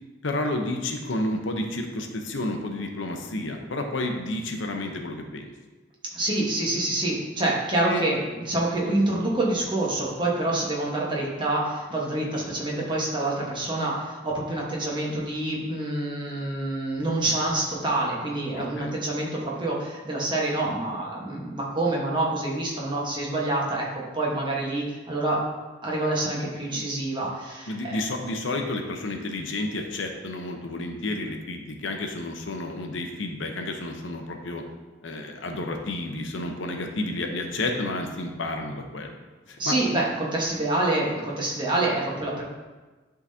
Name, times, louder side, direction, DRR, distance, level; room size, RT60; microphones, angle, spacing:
voice 1, 0.2-5.5 7.8-8.0 8.9-9.0 18.6-18.9 27.7-34.6 35.0-39.1 39.5-39.8, left 2 dB, 85° left, 3 dB, 0.8 m, -31 dB
voice 2, 6.1-25.4 25.8-28.0 39.6-42.4, right 2 dB, 25° right, -4 dB, 1.2 m, -27 dB
10.5 x 3.8 x 2.7 m, 1.3 s
head